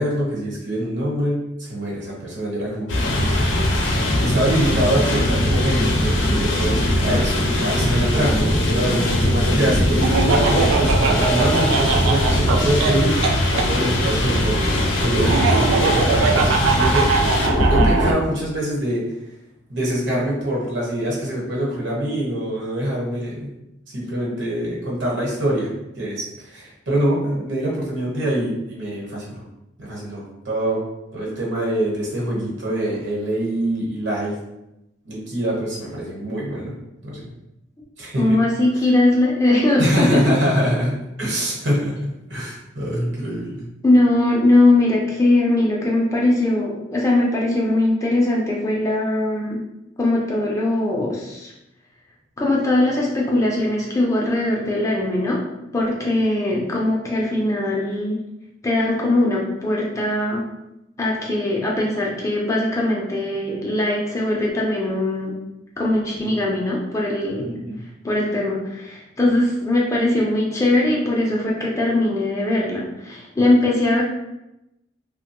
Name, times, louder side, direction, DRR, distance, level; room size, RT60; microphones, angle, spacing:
voice 1, 0.0-3.1 4.2-13.2 13.5-14.6 15.0-17.2 17.7-19.0 19.7-23.5 23.9-29.4 29.8-30.8 31.1-34.4 35.0-36.7 37.0-37.3 38.0-38.4 39.8-43.7 66.2-66.3 67.4-67.8, right 1 dB, 65° right, -5 dB, 1.0 m, -24 dB
sound 1, 2.9-18.1, left 1 dB, 70° left, 0.5 m, -20 dB
Laughter, 10.0-13.7 15.2-18.1, right 4 dB, 90° right, 0.3 m, -21 dB
voice 2, 38.2-40.3 43.8-49.6 50.0-51.5 52.4-55.4 55.7-58.2 58.6-60.4 61.0-65.4 65.8-67.5 68.0-74.0, left 1 dB, 15° left, -3 dB, 0.4 m, -20 dB
2.8 x 2.1 x 2.9 m, 0.90 s
head